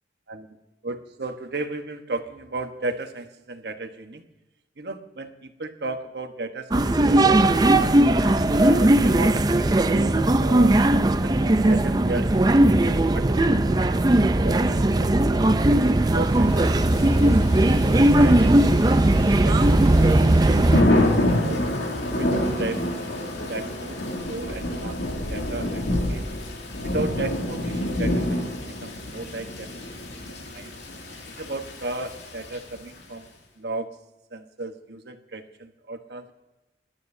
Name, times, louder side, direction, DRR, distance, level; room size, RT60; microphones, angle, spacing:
voice 1, 0.8-4.2 4.8-7.9 8.2-10.8 11.2-15.8 16.1-17.4 18.0-21.6 22.1-24.0 24.3-26.3 26.8-29.7 30.5-30.7 31.3-33.3 33.6-34.0 34.3-36.3, right 2 dB, 70° right, 6 dB, 1.1 m, -35 dB
sound 1, 6.7-20.8, right 1 dB, 25° right, 0.5 m, -18 dB
Thunder / Rain, 16.4-33.0, left 1 dB, 85° left, 2.4 m, -28 dB
21.0 x 12.0 x 2.7 m, 1.0 s
head